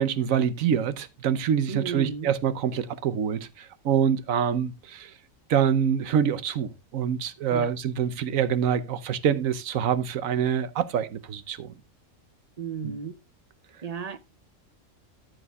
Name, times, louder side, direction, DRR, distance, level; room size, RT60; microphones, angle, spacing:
voice 1, 0.0-5.1 5.5-11.7 12.8-13.0, right 8 dB, 85° right, 1.2 m, -26 dB
voice 2, 1.7-2.3 7.5-7.7 12.6-13.2 13.8-14.2, right 6 dB, 40° right, 0.7 m, -33 dB
13.5 x 7.8 x 2.3 m
omnidirectional pair, 1.4 m